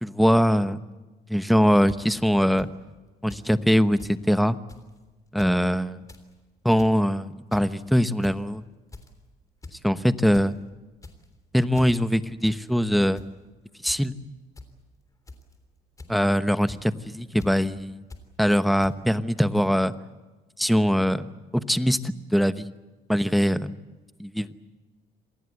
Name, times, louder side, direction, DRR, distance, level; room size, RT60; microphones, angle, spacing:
voice 1, 0.0-0.8 1.3-2.7 3.2-4.6 5.3-6.0 6.6-8.6 9.8-10.5 11.5-13.2 13.8-14.1 16.1-18.0 18.4-19.9 20.6-21.3 21.7-22.7 23.1-23.7 24.2-24.5, equal, ahead, 12 dB, 1.0 m, -22 dB
sound 1, 1.9-2.0 2.6-2.7 3.3-3.5 3.7-4.2 4.7-4.9 5.3-5.6 5.9-6.2 6.6-7.0 7.5-7.8 8.2-8.5 8.9-9.2 9.6-9.8 10.1-10.5 10.9-11.4 11.7-11.9 12.4-12.6 12.9-13.3 13.9-14.0 14.6-14.7 15.3-15.5 16.0-16.3 16.7-16.8 17.4-17.5 18.1-18.2 18.8-18.9, left 3 dB, 20° left, 3.5 m, -43 dB
27.5 x 19.5 x 8.1 m, 1.2 s
cardioid pair, 110°, 17 cm